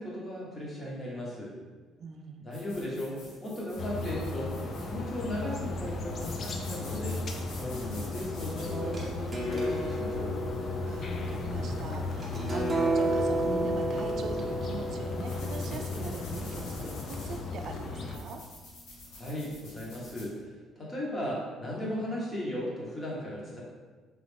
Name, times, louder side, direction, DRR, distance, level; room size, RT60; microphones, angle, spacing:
voice 1, 0.0-1.6 2.4-4.5 4.8-7.2 7.6-10.4 19.1-23.6, left 1 dB, 20° left, -5 dB, 1.0 m, -36 dB
voice 2, 2.0-2.5 10.8-18.4, right 4 dB, 55° right, 4 dB, 0.4 m, -41 dB
sound 1, 2.5-20.3, left 2 dB, 80° left, 1.0 m, -50 dB
sound 2, 3.8-18.2, left 3 dB, 45° left, 0.3 m, -36 dB
sound 3, 8.7-16.4, right 1 dB, 20° right, 0.8 m, -32 dB
3.0 x 2.5 x 3.4 m, 1.4 s
cardioid pair, 120°, 0 cm